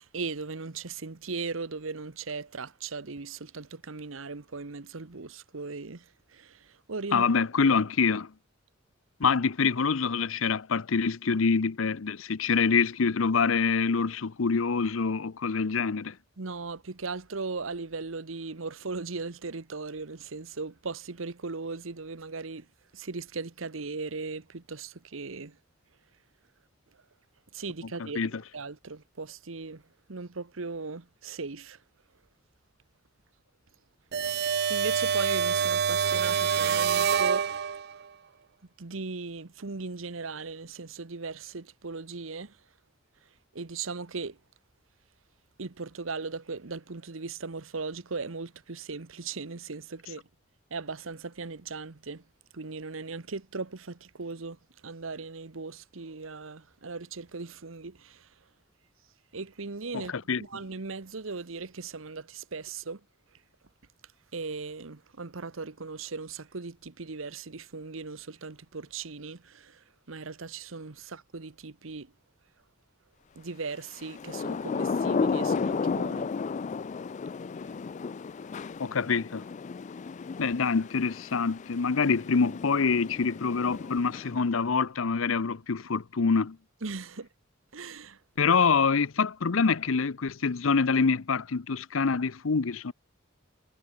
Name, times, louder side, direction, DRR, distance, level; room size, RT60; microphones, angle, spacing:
voice 1, 0.1-6.0 6.3-6.6 6.9-7.2 16.4-22.6 22.9-25.6 27.5-28.2 28.5-29.8 30.1-31.8 34.4-37.7 38.8-42.5 43.5-44.4 45.6-50.2 50.7-52.2 52.5-54.6 54.8-58.3 59.3-60.1 60.4-63.0 64.3-69.8 70.1-72.1 73.4-76.3 86.8-87.3 87.7-88.2, right 4 dB, 80° right, 1.1 m, -38 dB
voice 2, 7.1-8.3 9.2-16.2 28.0-28.4 59.9-60.4 78.8-79.5 80.4-86.6 88.4-92.9, left 5 dB, 80° left, 0.7 m, -26 dB
vw-sawfade, 34.1-38.0, right 7 dB, 55° right, 0.6 m, -26 dB
Thunder / Rain, 74.0-84.6, left 5 dB, 35° left, 0.3 m, -33 dB
head